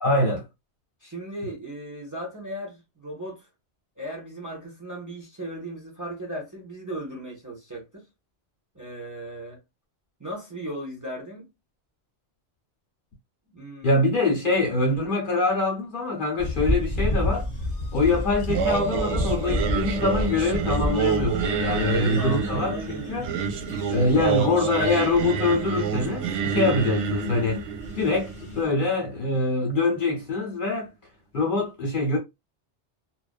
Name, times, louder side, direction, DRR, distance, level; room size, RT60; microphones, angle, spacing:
voice 1, 0.0-0.4 13.8-17.5 17.9-23.3 23.9-27.6 28.0-30.9 31.3-32.2, left 3 dB, 50° left, 0.8 m, -24 dB
voice 2, 1.0-3.5 4.0-8.0 8.7-9.6 10.2-11.5 13.5-14.0 21.8-23.2, right 1 dB, 20° right, 0.7 m, -36 dB
sound 1, 16.4-28.6, left 1 dB, 30° left, 1.0 m, -31 dB
Singing, 18.5-29.6, right 6 dB, 80° right, 0.9 m, -28 dB
2.5 x 2.1 x 2.4 m
omnidirectional pair, 1.2 m